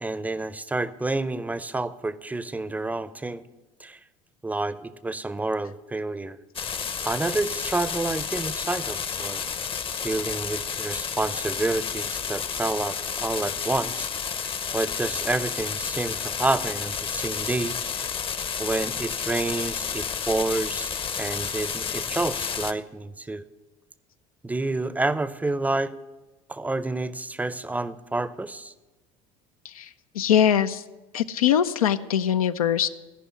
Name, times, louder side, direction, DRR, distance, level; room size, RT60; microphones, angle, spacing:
voice 1, 0.0-3.4 3.8-4.0 4.4-6.4 7.0-9.4 10.0-14.1 14.7-17.8 18.6-20.9 21.2-23.5 24.4-25.9 26.5-28.7, right 2 dB, 10° right, 16 dB, 0.5 m, -29 dB
sound 1, 6.6-22.7, left 6 dB, 30° left, 0.6 m, -31 dB
voice 2, 29.6-30.8 31.1-32.9, left 9 dB, 90° left, 10 dB, 0.4 m, -22 dB
14.5 x 5.4 x 7.7 m, 1.2 s
hypercardioid pair, 70°, 18 cm